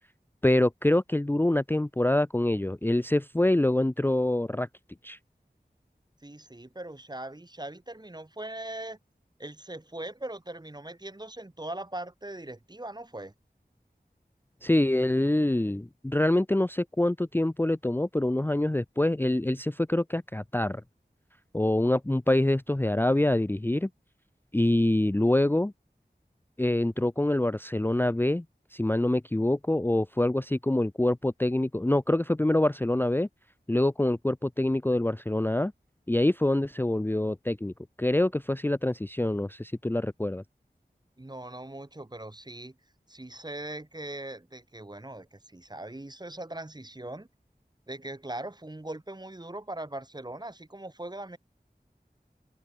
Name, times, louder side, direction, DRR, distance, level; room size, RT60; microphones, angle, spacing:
voice 1, 0.4-4.7 5.0-5.2 14.6-20.8 21.5-23.9 24.5-25.7 26.6-28.4 28.7-33.3 33.7-35.7 36.1-37.7 38.0-40.4, left 1 dB, 10° left, 0.5 m, -25 dB
voice 2, 6.2-9.0 9.4-13.3 41.2-42.8 43.1-47.3 47.9-51.4, right 1 dB, 25° right, 1.1 m, -40 dB
wide cardioid pair, 50°, 17 cm